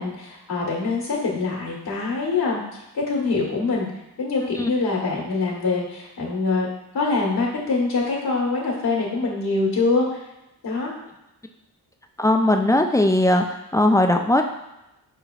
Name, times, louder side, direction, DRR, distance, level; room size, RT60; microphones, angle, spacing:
voice 1, 0.0-2.6 2.9-3.9 4.2-6.7 6.9-10.2 10.6-10.9, left 3 dB, 65° left, -3 dB, 1.3 m, -24 dB
voice 2, 12.2-13.4 13.7-14.4, left 1 dB, 10° left, 4 dB, 0.3 m, -18 dB
4.8 x 3.2 x 2.3 m, 0.91 s
supercardioid pair, 55°, 40 cm